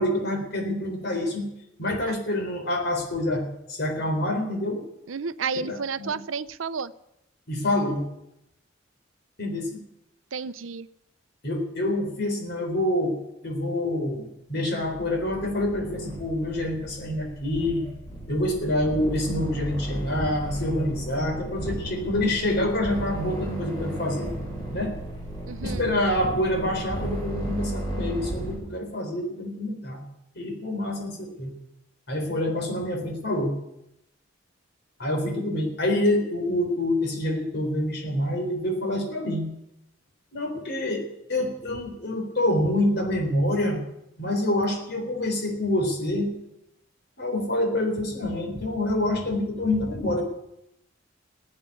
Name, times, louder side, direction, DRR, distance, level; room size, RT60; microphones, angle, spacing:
voice 1, 0.0-1.5 1.8-4.8 5.5-6.2 7.5-8.1 9.4-9.8 11.4-13.2 13.4-17.9 18.3-24.3 24.7-25.0 25.6-30.0 30.4-31.5 32.1-33.5 35.0-39.5 40.3-43.8 44.2-46.4 47.2-50.2, left 1 dB, 55° left, 3 dB, 4.0 m, -27 dB
voice 2, 5.1-6.9 10.3-10.9 25.5-25.9, right 5 dB, 80° right, 14 dB, 0.7 m, -31 dB
sound 1, 14.8-28.5, right 1 dB, 20° left, 8.0 m, -35 dB
15.5 x 9.0 x 9.6 m, 0.82 s
head